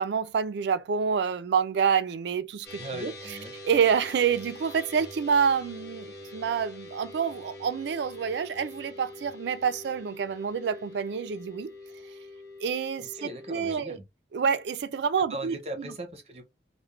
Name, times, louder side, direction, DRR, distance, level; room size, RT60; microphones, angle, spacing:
voice 1, 0.0-3.1 3.6-11.7 12.6-14.0 14.3-15.6, right 6 dB, 75° right, 0.3 m, -27 dB
sound 1, 2.6-13.8, left 1 dB, 65° left, 0.8 m, -44 dB
voice 2, 2.8-3.5 13.1-14.0 15.3-16.4, right 1 dB, 35° right, 0.7 m, -38 dB
2.4 x 2.1 x 3.1 m
head